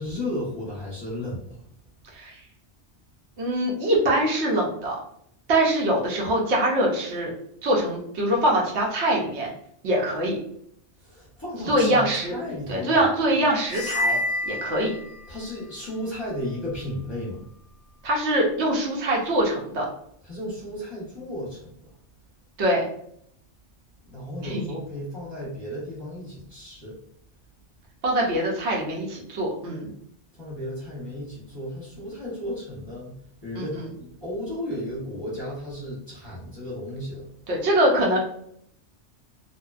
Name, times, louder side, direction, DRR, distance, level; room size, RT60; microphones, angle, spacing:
voice 1, 0.0-1.6 11.0-13.0 13.4-13.5 15.3-17.4 20.3-21.6 24.1-26.9 30.4-33.1 33.4-37.2, left 1 dB, 25° left, -7 dB, 0.7 m, -34 dB
voice 2, 3.4-5.0 5.5-7.3 7.6-9.5 9.8-10.4 11.7-12.4 12.7-14.2 14.5-14.9 18.0-19.9 22.6-22.8 24.4-24.7 28.0-29.9 33.5-33.9 37.5-38.2, right 1 dB, 70° right, -1 dB, 1.0 m, -23 dB
sound 1, 13.7-15.5, left 1 dB, 65° left, 0.7 m, -28 dB
2.5 x 2.1 x 2.3 m, 0.69 s
omnidirectional pair, 1.2 m